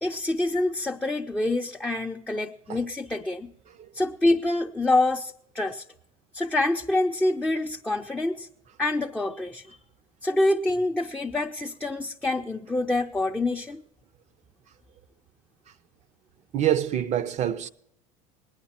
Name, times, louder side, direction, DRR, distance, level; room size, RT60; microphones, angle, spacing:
voice 1, 0.0-3.5 3.9-5.8 6.3-8.5 8.8-9.8 10.2-13.8, left 2 dB, 5° left, 0.6 m, -26 dB
voice 2, 16.5-17.7, right 11 dB, 45° right, 0.7 m, -26 dB
20.0 x 9.5 x 4.3 m
hypercardioid pair, 80°, 17 cm